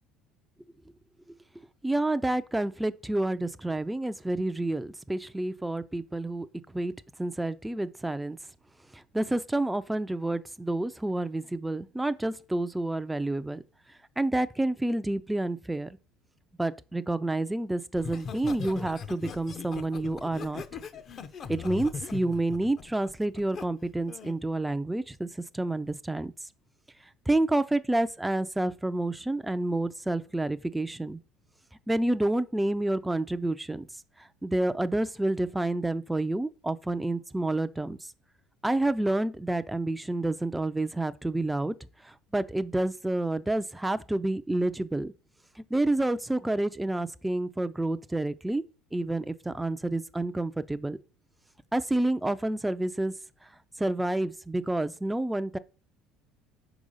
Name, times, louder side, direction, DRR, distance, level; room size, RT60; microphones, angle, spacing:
voice 1, 1.8-6.5 6.7-6.9 7.2-8.4 8.9-13.6 14.2-16.0 16.6-20.6 21.5-25.3 25.5-26.3 27.3-31.2 31.9-33.9 34.2-38.1 38.6-41.8 42.0-45.1 45.6-48.6 48.9-51.0 51.7-53.1 53.8-55.6, right 2 dB, 5° right, 0.4 m, -29 dB
Laughter, 18.0-23.6 24.1-24.4, left 6 dB, 40° left, 0.6 m, -39 dB
4.9 x 4.7 x 5.4 m
supercardioid pair, 110°, 0 cm